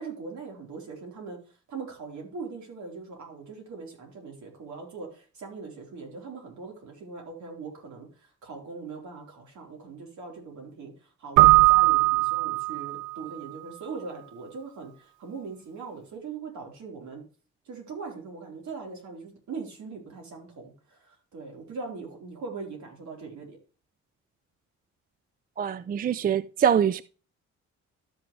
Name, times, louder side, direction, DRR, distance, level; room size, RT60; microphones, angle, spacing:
voice 1, 0.0-1.4 1.7-17.2 17.7-23.6, right 4 dB, 70° right, 4.1 m, -41 dB
Keyboard (musical), 11.4-13.2, right 21 dB, 90° right, 0.5 m, -19 dB
voice 2, 25.6-27.0, right 8 dB, 30° right, 0.4 m, -24 dB
12.5 x 6.0 x 3.2 m
cardioid pair, 90°, 30 cm